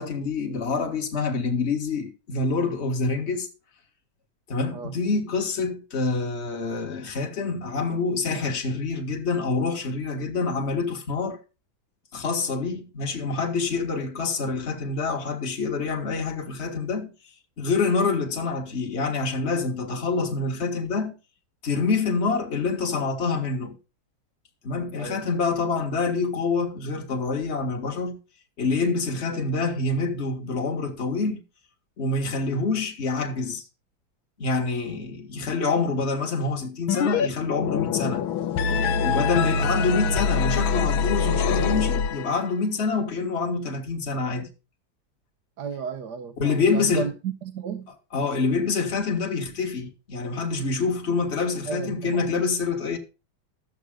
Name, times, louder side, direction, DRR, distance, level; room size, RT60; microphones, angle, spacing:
voice 1, 0.0-3.5 4.5-11.4 12.1-17.1 17.6-21.2 21.6-23.8 24.6-28.2 28.6-31.4 32.0-33.7 34.4-38.2 39.0-44.5 46.4-47.1 48.1-53.0, left 4 dB, 35° left, 2.0 m, -26 dB
sound 1, 36.9-37.3 37.5-42.5, left 5 dB, 85° left, 1.7 m, -24 dB
voice 2, 45.6-47.9 51.7-52.2, right 7 dB, 60° right, 1.5 m, -33 dB
13.0 x 8.1 x 5.0 m
omnidirectional pair, 2.1 m